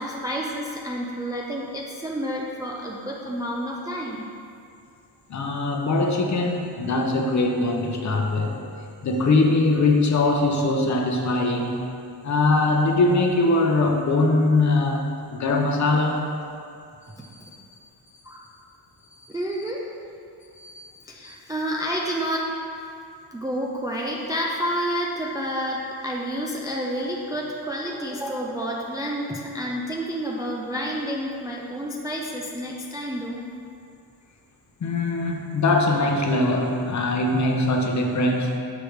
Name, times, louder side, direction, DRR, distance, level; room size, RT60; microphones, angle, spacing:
voice 1, 0.0-4.3 18.2-18.4 19.3-19.9 21.1-22.5 23.3-33.5, equal, 10° right, -2 dB, 0.3 m, -29 dB
voice 2, 5.3-8.6 9.0-11.8 12.2-15.0 15.3-16.2 17.5-17.6 20.5-20.9 21.2-21.4 34.8-38.6, left 2 dB, 40° left, 1 dB, 0.7 m, -22 dB
6.2 x 4.9 x 3.1 m, 2.4 s
cardioid pair, 115°, 43 cm